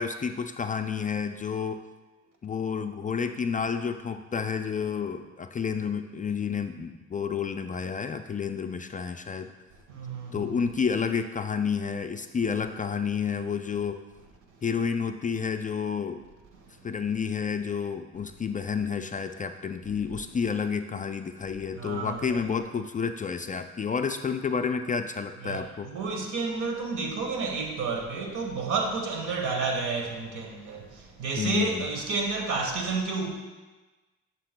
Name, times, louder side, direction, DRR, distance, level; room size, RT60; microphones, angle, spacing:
voice 1, 0.0-1.8 2.4-9.5 10.3-14.0 14.6-16.2 16.8-25.9 31.4-31.9, left 6 dB, 25° left, 7 dB, 0.4 m, -30 dB
voice 2, 9.9-10.5 21.7-22.5 25.4-33.3, right 4 dB, 80° right, 2 dB, 1.5 m, -31 dB
11.5 x 6.6 x 2.2 m, 1.2 s
cardioid pair, 90°, 30 cm